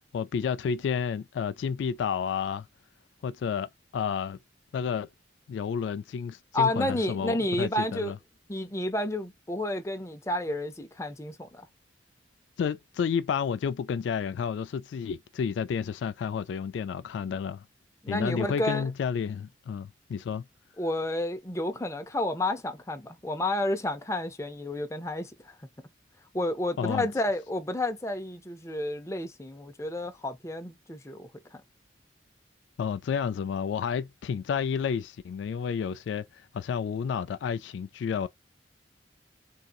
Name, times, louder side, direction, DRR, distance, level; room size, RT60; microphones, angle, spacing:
voice 1, 0.1-2.7 3.2-4.4 4.7-5.1 5.5-8.2 12.6-17.6 18.1-20.4 26.8-27.1 32.8-38.3, left 7 dB, 80° left, 0.3 m, -31 dB
voice 2, 6.5-8.1 8.5-11.7 18.0-18.9 20.8-25.5 26.3-31.6, left 1 dB, 15° left, 0.6 m, -30 dB
3.7 x 2.6 x 2.4 m
head